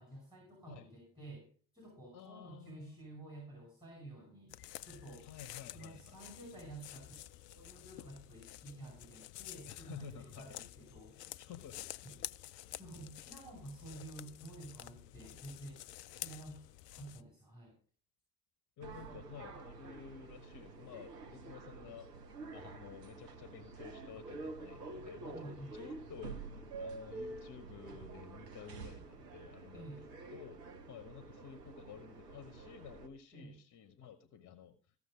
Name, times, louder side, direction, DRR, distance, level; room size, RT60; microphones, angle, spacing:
voice 1, 0.0-1.5 1.7-4.6 4.8-5.3 5.7-7.2 7.5-11.2 12.0-12.2 12.8-15.8 16.1-16.7 16.9-17.8 19.1-19.2 19.5-19.6 25.3-25.8 29.7-30.1 33.3-33.6, right 2 dB, 10° right, -1 dB, 5.3 m, -51 dB
voice 2, 2.1-3.0 5.2-6.2 9.6-10.6 11.2-12.3 18.8-22.1 22.5-29.9 30.3-30.6 30.9-34.9, left 8 dB, 35° left, 10 dB, 1.1 m, -52 dB
sound 1, 4.5-17.2, left 14 dB, 75° left, 0.5 m, -50 dB
sound 2, 18.8-33.1, right 3 dB, 75° right, 1.2 m, -48 dB
15.0 x 6.6 x 4.9 m, 0.42 s
figure-of-eight pair, 60°, 49 cm